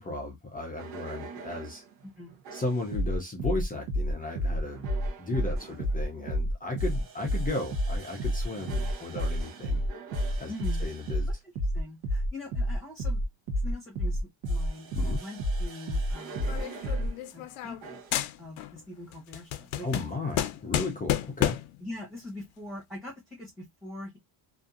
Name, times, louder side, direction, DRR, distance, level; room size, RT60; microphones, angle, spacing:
voice 1, 0.0-1.8 2.5-4.8 5.2-9.8 10.4-10.5 10.8-11.3 14.9-15.2 19.8-21.6, left 2 dB, 20° left, 0.3 m, -35 dB
sound 1, 0.8-1.8 2.4-17.1 17.8-18.2, equal, 65° right, 0.9 m, -30 dB
voice 2, 2.0-2.3 10.5-10.8 11.7-13.2 13.6-14.2 14.5-16.6 17.3-18.0 18.4-20.1 21.8-24.2, left 1 dB, ahead, 0.9 m, -42 dB
sound 2, 16.5-17.9 18.1-18.8 19.1-21.8, left 12 dB, 80° left, 0.6 m, -31 dB
2.6 x 2.4 x 2.4 m
cardioid pair, 155°, 48 cm